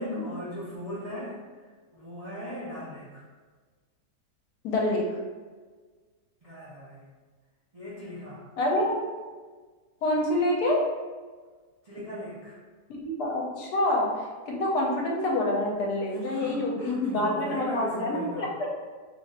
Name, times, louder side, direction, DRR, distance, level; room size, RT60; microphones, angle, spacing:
voice 1, 0.0-1.4 1.9-3.2 6.4-7.0 7.7-8.4 11.8-12.6 16.1-18.5, equal, 35° right, -10 dB, 0.5 m, -38 dB
voice 2, 4.6-5.2 8.6-9.2 10.0-10.8 12.9-18.7, left 1 dB, 70° left, -2 dB, 1.2 m, -27 dB
3.0 x 2.5 x 4.1 m, 1.4 s
omnidirectional pair, 1.9 m